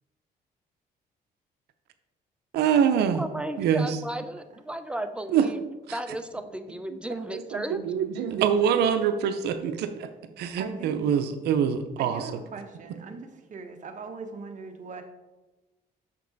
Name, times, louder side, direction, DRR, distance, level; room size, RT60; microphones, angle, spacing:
voice 1, 2.5-3.2 3.6-4.0 5.3-5.5 5.9-6.0 7.3-10.1 10.4-12.4, right 8 dB, 85° right, 9 dB, 0.5 m, -25 dB
voice 2, 3.1-5.6 5.9-7.8, right 1 dB, 5° right, 9 dB, 0.6 m, -34 dB
voice 3, 10.6-10.9 12.0-15.0, right 4 dB, 50° right, 4 dB, 1.0 m, -40 dB
6.7 x 5.3 x 3.9 m, 1.1 s
cardioid pair, 90°, 17 cm